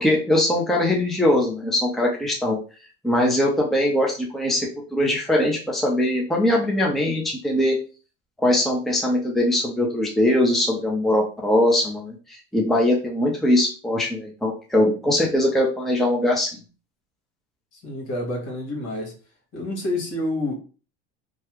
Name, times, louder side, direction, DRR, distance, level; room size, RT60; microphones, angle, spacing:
voice 1, 0.0-2.6 3.0-7.8 8.4-16.5, left 1 dB, ahead, 0.7 m, -21 dB
voice 2, 17.7-19.2 19.5-20.5, left 1 dB, 50° left, 1.6 m, -28 dB
3.1 x 2.2 x 3.0 m
hypercardioid pair, 85°, 32 cm